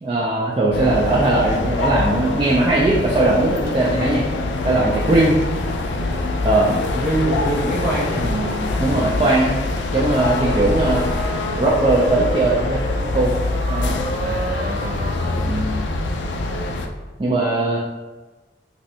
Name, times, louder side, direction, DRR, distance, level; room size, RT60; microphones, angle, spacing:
voice 1, 0.0-4.2 4.6-5.3 6.4-6.8 8.2-9.6 9.9-11.1 11.6-12.8 13.1-13.3 13.7-13.9 15.3-15.7 17.2-17.8, right 2 dB, 30° right, -6 dB, 0.4 m, -19 dB
sound 1, 0.7-16.9, left 2 dB, 80° left, 0.3 m, -24 dB
voice 2, 6.7-8.2 14.2-15.0, right 1 dB, 50° right, -6 dB, 1.1 m, -25 dB
sound 2, 9.9-15.4, equal, 75° right, 0.9 m, -31 dB
3.1 x 2.6 x 2.7 m, 1.2 s
head